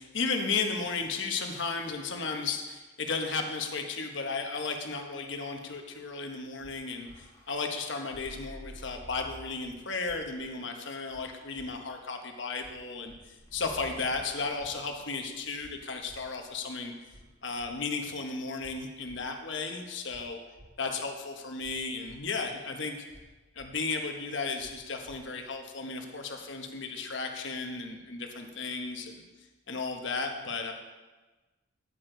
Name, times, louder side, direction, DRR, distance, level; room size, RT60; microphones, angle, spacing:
voice 1, 0.0-16.9 17.4-20.4 20.8-23.0 23.5-29.2 29.7-30.7, left 4 dB, 65° left, 4 dB, 1.1 m, -34 dB
sound 1, 6.5-9.8 10.3-10.8 13.4-17.5, equal, 20° left, 1.9 m, -52 dB
sound 2, 6.6-6.7 7.0-7.2 8.1-8.2 8.5-8.7 9.6-9.7 10.0-10.2 11.1-11.2 11.5-11.7 12.6-12.7 13.0-13.2 14.1-14.2 14.5-14.7 15.6-15.7 16.0-16.2 17.1-17.2 17.5-17.7 18.6-18.7 19.0-19.2 20.1-20.2 20.5-20.7 21.6-21.7 22.0-22.2 23.1-23.2 23.5-23.7 24.6-24.7 25.0-25.2, equal, 45° right, 1.7 m, -54 dB
9.8 x 9.1 x 3.9 m, 1.2 s
head